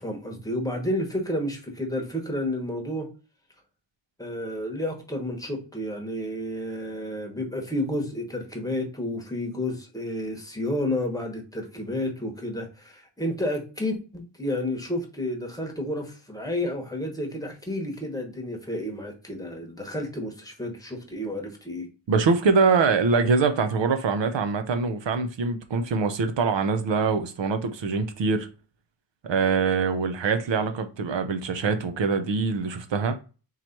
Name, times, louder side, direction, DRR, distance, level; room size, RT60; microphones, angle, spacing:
voice 1, 0.0-3.1 4.2-21.9, left 1 dB, 10° left, 1.0 m, -31 dB
voice 2, 22.1-28.5 29.2-33.2, right 4 dB, 70° right, 0.7 m, -24 dB
3.9 x 3.0 x 4.4 m
wide cardioid pair, 175°, 46 cm